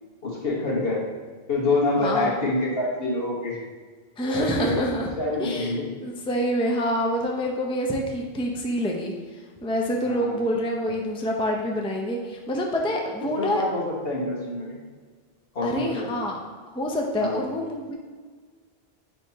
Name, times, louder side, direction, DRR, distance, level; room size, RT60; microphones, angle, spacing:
voice 1, 0.2-1.0 1.5-3.6 4.2-5.8 10.0-10.4 13.2-14.8 15.5-16.1 17.2-17.4, left 2 dB, 70° left, -4 dB, 1.6 m, -26 dB
voice 2, 2.0-2.4 4.2-5.1 5.4-9.1 9.6-13.6 15.6-16.4 16.7-17.9, equal, 5° left, 0 dB, 0.5 m, -27 dB
9.7 x 3.6 x 2.8 m, 1.5 s
omnidirectional pair, 1.0 m